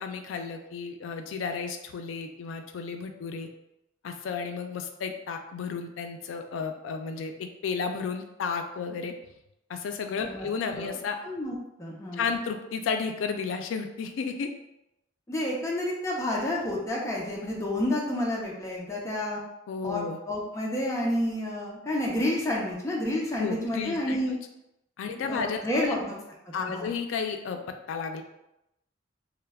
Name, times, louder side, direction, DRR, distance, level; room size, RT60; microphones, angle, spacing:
voice 1, 0.0-3.5 4.0-9.1 9.7-11.2 12.1-14.5 19.7-20.2 23.4-24.4 25.0-26.0 26.5-27.6 27.9-28.2, left 5 dB, 80° left, 5 dB, 0.3 m, -33 dB
voice 2, 11.2-12.3 15.3-19.4 19.8-24.3 25.1-26.2 26.6-26.9, left 1 dB, 15° left, -3 dB, 0.4 m, -30 dB
2.2 x 2.0 x 3.3 m, 0.87 s
head